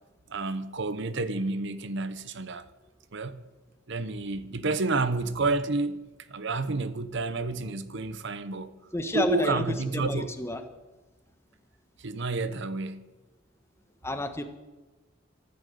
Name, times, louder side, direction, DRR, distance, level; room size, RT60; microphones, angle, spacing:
voice 1, 0.3-2.7 3.1-3.4 3.9-8.7 9.1-10.3 12.0-13.1, right 3 dB, 60° right, 0.9 m, -30 dB
voice 2, 8.9-9.6 9.9-10.6 14.0-14.4, left 1 dB, 15° left, 1.3 m, -30 dB
14.5 x 12.5 x 6.8 m
head